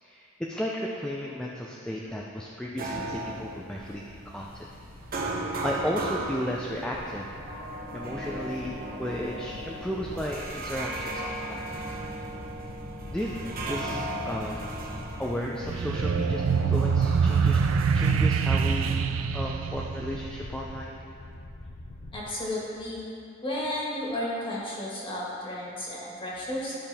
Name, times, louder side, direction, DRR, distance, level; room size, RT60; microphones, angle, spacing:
voice 1, 0.0-4.7 5.2-7.3 7.9-11.7 13.1-14.7 15.2-21.0, equal, 5° left, -3 dB, 0.4 m, -34 dB
sound 1, 2.8-19.0, right 2 dB, 45° right, 0.8 m, -37 dB
sound 2, 2.9-22.3, left 1 dB, 55° left, 0.6 m, -44 dB
sound 3, 15.6-20.6, right 6 dB, 90° right, 0.4 m, -25 dB
voice 2, 22.1-23.1 23.4-26.8, left 1 dB, 25° left, -6 dB, 1.7 m, -33 dB
11.5 x 5.1 x 3.4 m, 2.5 s
head